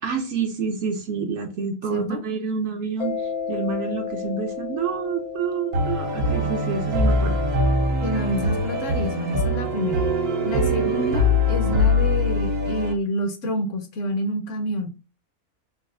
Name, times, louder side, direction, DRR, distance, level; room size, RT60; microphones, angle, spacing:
voice 1, 0.0-7.4, right 5 dB, 65° right, 0.8 m, -28 dB
voice 2, 1.9-2.2 8.0-10.0 10.4-14.9, left 1 dB, 65° left, 1.0 m, -28 dB
Mallet percussion, 3.0-9.4, left 7 dB, 85° left, 1.2 m, -34 dB
sound 1, 5.7-12.9, left 1 dB, 90° right, 1.4 m, -22 dB
4.1 x 2.2 x 2.5 m
omnidirectional pair, 1.5 m